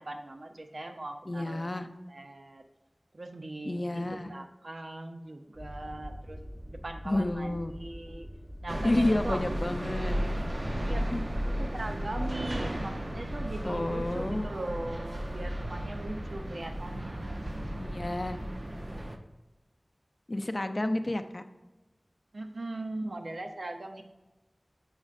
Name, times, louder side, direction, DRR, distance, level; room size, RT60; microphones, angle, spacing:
voice 1, 0.0-2.6 3.1-6.4 6.7-8.3 8.6-9.5 10.8-17.7 22.3-24.0, right 2 dB, 85° right, 5 dB, 0.6 m, -40 dB
voice 2, 1.3-1.9 3.6-4.3 7.1-7.7 8.8-10.2 11.1-11.2 13.6-14.5 17.8-18.4 20.3-21.4, left 1 dB, 50° left, 8 dB, 0.5 m, -30 dB
sound 1, 5.5-17.4, equal, 5° right, 2.0 m, -49 dB
sound 2, 8.7-19.2, equal, 45° right, 0.6 m, -34 dB
7.1 x 6.3 x 2.5 m, 1.1 s
wide cardioid pair, 50°, 0 cm